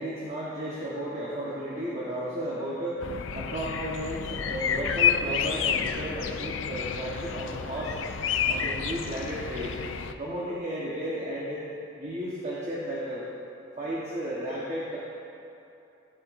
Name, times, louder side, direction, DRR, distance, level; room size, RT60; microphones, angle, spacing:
voice 1, 0.0-8.0 8.4-9.8 10.2-11.6 12.0-13.3 13.8-15.0, equal, 35° right, -7 dB, 1.4 m, -33 dB
sound 1, 3.0-10.1, left 7 dB, 90° left, 0.5 m, -30 dB
15.5 x 8.3 x 2.7 m, 2.8 s
head